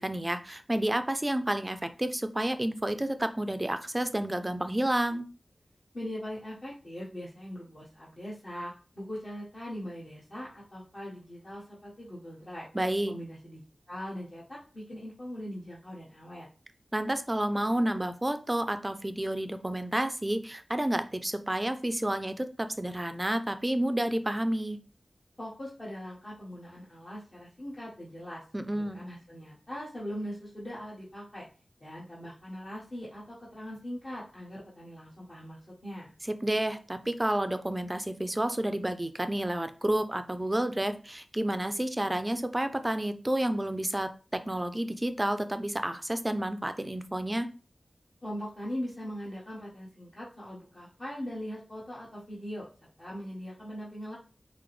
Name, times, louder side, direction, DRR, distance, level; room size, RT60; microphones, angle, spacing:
voice 1, 0.0-5.3 12.7-13.2 16.9-24.8 28.5-29.0 36.3-47.5, right 1 dB, 20° right, 9 dB, 0.5 m, -30 dB
voice 2, 5.9-12.7 13.1-16.5 25.4-31.5 31.8-36.1 48.2-52.7 53.0-54.2, equal, 45° left, -8 dB, 1.4 m, -41 dB
5.8 x 2.1 x 3.2 m, 0.36 s
wide cardioid pair, 75°, 0 cm